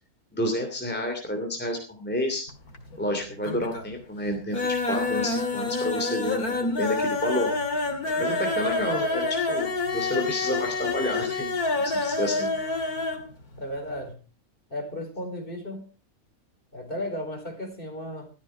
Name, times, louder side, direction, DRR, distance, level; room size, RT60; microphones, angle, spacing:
voice 1, 0.3-2.4 3.0-4.6 4.9-7.5 8.2-9.7 9.9-12.5, left 1 dB, 5° left, 4 dB, 3.0 m, -30 dB
sound 1, 2.5-3.1 3.4-3.9 4.2-13.3 13.5-13.6 14.0-14.1, left 3 dB, 85° left, 2.7 m, -27 dB
voice 2, 13.6-14.2 14.7-15.9 16.7-18.3, left 1 dB, 35° left, 3 dB, 4.7 m, -34 dB
14.5 x 13.5 x 4.6 m, 0.34 s
omnidirectional pair, 1.6 m